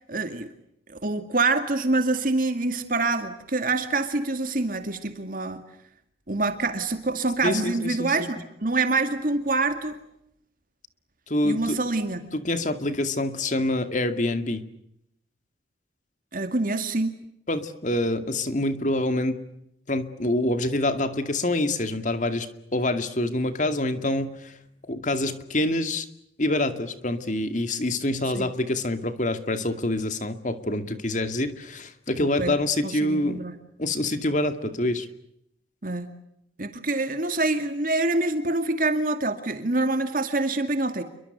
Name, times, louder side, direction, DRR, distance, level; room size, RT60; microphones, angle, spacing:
voice 1, 0.1-0.5 0.9-5.6 6.3-10.0 11.4-12.2 16.3-17.1 28.3-28.5 32.2-32.6 32.8-33.5 35.8-36.1 36.6-41.0, right 2 dB, 45° right, 8 dB, 2.2 m, -26 dB
voice 2, 7.4-8.1 11.3-11.8 12.3-14.6 17.5-19.4 19.9-24.6 24.9-26.1 26.4-33.4 33.8-35.1, left 1 dB, 40° left, 9 dB, 2.3 m, -26 dB
29.5 x 23.5 x 8.1 m, 0.78 s
head